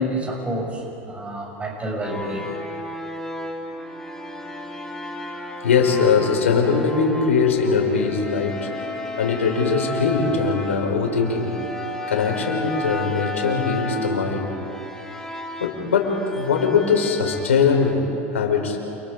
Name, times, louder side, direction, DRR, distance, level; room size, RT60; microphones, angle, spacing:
voice 1, 0.0-2.5, equal, 20° right, 0 dB, 7.4 m, -28 dB
sound 1, 2.0-17.9, left 1 dB, 10° left, 4.3 m, -33 dB
voice 2, 5.6-8.7 9.2-11.5 12.1-14.5 15.6-18.0 18.3-18.8, left 5 dB, 90° left, 1 dB, 5.4 m, -21 dB
29.5 x 28.5 x 5.3 m, 2.8 s
hypercardioid pair, 95°, 7 cm